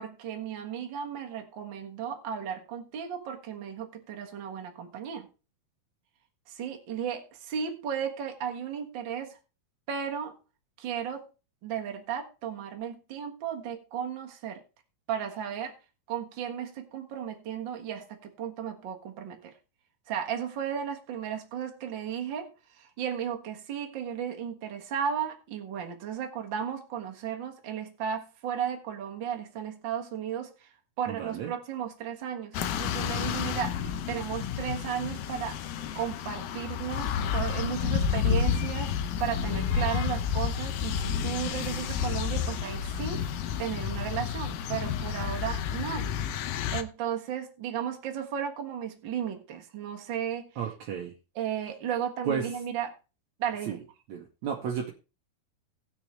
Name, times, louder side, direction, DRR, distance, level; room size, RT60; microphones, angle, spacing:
voice 1, 0.0-5.3 6.5-9.4 9.9-10.3 10.8-11.3 11.6-14.6 15.1-15.7 16.1-19.5 20.1-35.6 35.9-38.9 39.2-43.3 43.6-46.1 46.7-50.5 51.3-52.9 53.4-53.8, right 8 dB, 45° right, 1.6 m, -34 dB
voice 2, 31.1-31.5 50.6-51.1 52.3-52.5 53.7-53.8 54.1-54.9, right 7 dB, 65° right, 1.9 m, -32 dB
sound 1, 32.5-46.8, left 7 dB, 85° left, 2.6 m, -30 dB
19.0 x 6.4 x 3.3 m
omnidirectional pair, 4.2 m